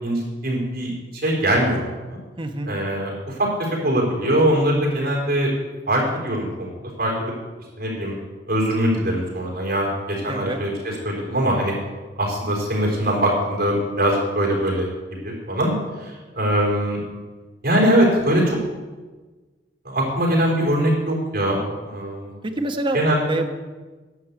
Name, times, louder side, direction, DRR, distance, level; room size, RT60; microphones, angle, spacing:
voice 1, 0.0-1.8 2.1-2.2 2.7-3.5 3.8-5.5 5.9-7.3 7.8-8.2 8.5-11.7 12.2-14.9 15.2-15.7 16.0-17.0 17.6-18.6 19.8-21.6 21.8-22.3 22.9-23.2, right 1 dB, 60° right, -2 dB, 4.1 m, -22 dB
voice 2, 2.4-2.7 10.3-10.6 21.5-21.6 22.4-23.0 23.3-23.5, right 1 dB, 30° right, 4 dB, 1.1 m, -26 dB
11.0 x 6.2 x 8.2 m, 1.3 s
head